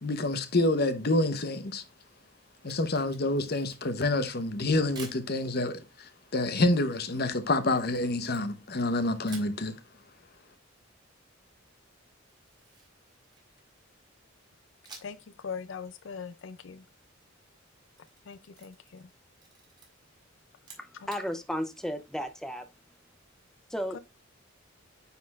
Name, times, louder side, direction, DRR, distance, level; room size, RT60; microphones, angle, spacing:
voice 1, 0.0-1.8 2.6-9.8, left 2 dB, 50° left, 0.9 m, -28 dB
Camera, 2.6-4.0 4.9-5.3 7.7-8.9 9.2-9.6 12.2-13.7 14.8-15.3 15.6-15.7 17.7-19.1 19.4-19.9 20.5-21.3, right 4 dB, 20° right, 2.8 m, -50 dB
voice 2, 15.0-16.8 18.3-19.1 21.0-21.1 23.9-24.0, left 6 dB, 70° left, 0.4 m, -41 dB
voice 3, 20.8-22.7 23.7-24.0, equal, 5° left, 0.6 m, -34 dB
9.6 x 4.1 x 2.4 m
head